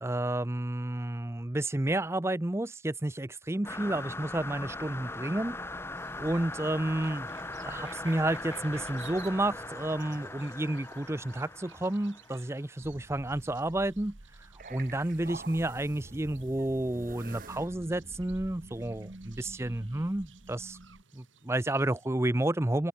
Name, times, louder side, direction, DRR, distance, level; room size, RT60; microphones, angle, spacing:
voice 1, 0.0-5.6 6.2-7.3 7.6-14.2 14.7-20.8 21.1-22.9, right 1 dB, 15° right, 0.5 m, -31 dB
sound 1, 3.6-12.6, left 2 dB, 10° left, 1.8 m, -40 dB
sound 2, 6.0-22.1, right 9 dB, 75° right, 4.1 m, -58 dB
sound 3, 12.8-21.0, right 2 dB, 45° right, 1.2 m, -47 dB
head